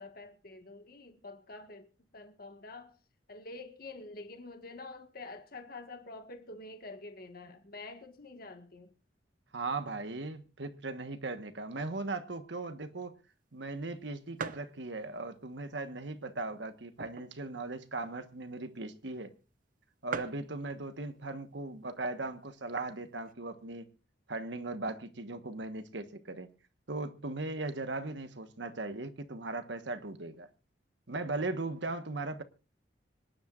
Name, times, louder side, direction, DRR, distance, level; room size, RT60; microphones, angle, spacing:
voice 1, 0.0-3.0 3.3-8.9, left 3 dB, 55° left, 1.7 m, -47 dB
voice 2, 9.5-13.2 13.5-19.3 20.0-23.9 24.3-26.5 26.9-30.5 31.1-32.4, right 2 dB, 75° right, 1.4 m, -38 dB
sound 1, 13.4-13.5 13.9-14.0 14.4-14.7 15.4-15.5 16.3-17.4 17.8-17.9 18.1-18.3 19.1-19.2 19.4-19.5 19.8-19.9 20.1-20.5 21.4-21.7 22.3-22.4 22.5-23.3, right 5 dB, 50° right, 0.7 m, -42 dB
25.5 x 10.5 x 2.5 m
head